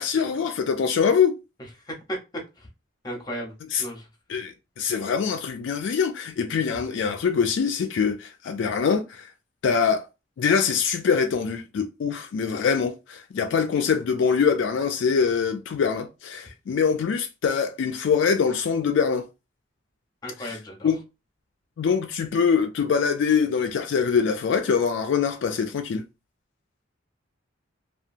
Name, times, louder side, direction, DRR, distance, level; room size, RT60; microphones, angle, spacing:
voice 1, 0.0-1.3 3.7-3.8 4.3-9.3 9.6-10.0 10.4-19.2 20.4-20.6 20.8-21.0 21.8-26.0, left 6 dB, 70° left, 0.3 m, -24 dB
voice 2, 1.8-2.2 2.6-2.7 3.0-3.5 3.8-4.1 20.2-20.9, equal, 20° left, 0.8 m, -34 dB
2.8 x 2.3 x 2.5 m
head